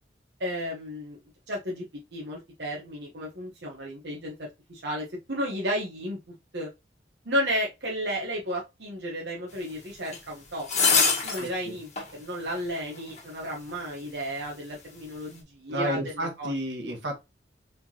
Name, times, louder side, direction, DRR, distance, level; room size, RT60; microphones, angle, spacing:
voice 1, 0.4-1.2 1.5-1.8 2.1-4.3 4.7-6.2 6.5-6.7 7.2-16.5, equal, 70° right, 1.1 m, -33 dB
sound 1, 10.1-10.2 10.7-11.5 12.0-12.1 13.2-13.3, left 5 dB, 40° left, 1.6 m, -23 dB
voice 2, 11.4-11.8 15.7-17.2, equal, 90° right, 1.5 m, -32 dB
4.8 x 3.8 x 2.9 m
head